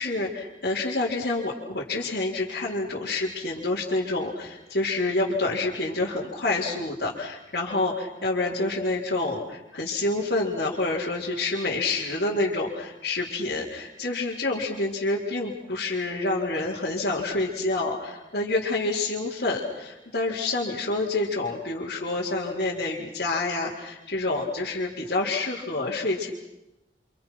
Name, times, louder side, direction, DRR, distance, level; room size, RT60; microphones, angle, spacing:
voice 1, 0.0-26.3, left 2 dB, 65° left, -8 dB, 4.6 m, -28 dB
30.0 x 28.0 x 6.1 m, 0.95 s
head